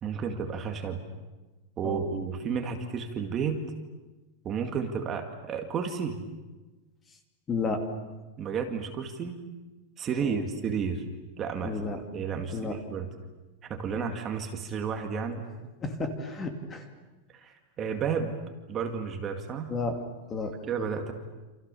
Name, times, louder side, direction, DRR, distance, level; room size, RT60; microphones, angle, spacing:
voice 1, 0.0-1.0 1.8-3.6 4.4-6.2 8.4-9.4 10.0-11.0 11.4-11.8 12.1-13.1 13.7-15.4 17.4-18.3 18.7-19.7 20.6-21.1, right 6 dB, 20° right, 4 dB, 2.1 m, -32 dB
voice 2, 7.5-7.9 10.2-10.4 11.6-12.0 12.5-12.8 15.8-16.9 19.7-20.0 20.3-20.5, left 3 dB, 15° left, 5 dB, 2.4 m, -32 dB
29.0 x 28.0 x 7.0 m, 1.2 s
supercardioid pair, 175°, 0 cm